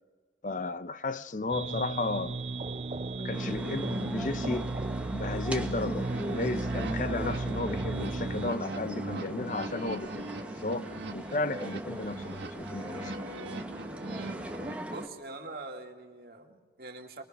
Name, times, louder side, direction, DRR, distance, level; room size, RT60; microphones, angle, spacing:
voice 1, 0.4-2.4 3.2-4.7 5.1-13.1, left 3 dB, 45° left, 0.6 m, -34 dB
sound 1, 1.5-8.5, right 2 dB, 35° right, 0.5 m, -34 dB
sound 2, 3.3-15.1, right 1 dB, 5° right, 1.1 m, -39 dB
sound 3, 6.0-14.8, right 2 dB, 75° right, 1.7 m, -40 dB
voice 2, 14.9-17.2, right 2 dB, 55° right, 2.2 m, -43 dB
27.0 x 21.5 x 5.9 m
head